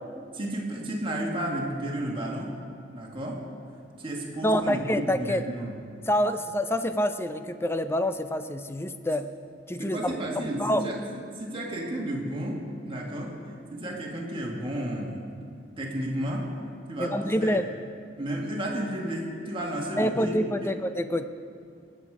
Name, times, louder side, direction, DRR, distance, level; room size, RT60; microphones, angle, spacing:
voice 1, 0.3-2.5 2.9-3.4 4.0-5.8 9.8-11.1 11.4-13.4 13.7-15.3 15.8-16.5 16.9-17.6 18.2-20.7, right 1 dB, 30° right, -2 dB, 2.0 m, -32 dB
voice 2, 4.4-5.4 6.1-9.3 9.7-10.1 10.6-10.9 17.0-17.6 20.0-21.3, equal, 15° left, 10 dB, 0.5 m, -26 dB
20.0 x 8.3 x 4.9 m, 2.3 s
head